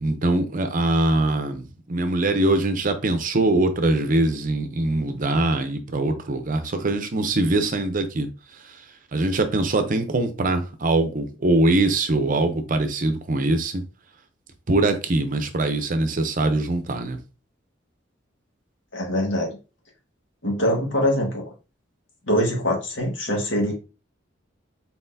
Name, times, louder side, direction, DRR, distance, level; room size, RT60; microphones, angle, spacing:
voice 1, 0.0-8.3 9.1-13.8 14.7-17.2, right 2 dB, 45° right, 7 dB, 0.7 m, -22 dB
voice 2, 18.9-19.6 20.4-21.4 22.3-23.7, equal, 85° left, 0 dB, 1.8 m, -23 dB
4.2 x 4.2 x 2.7 m, 0.32 s
head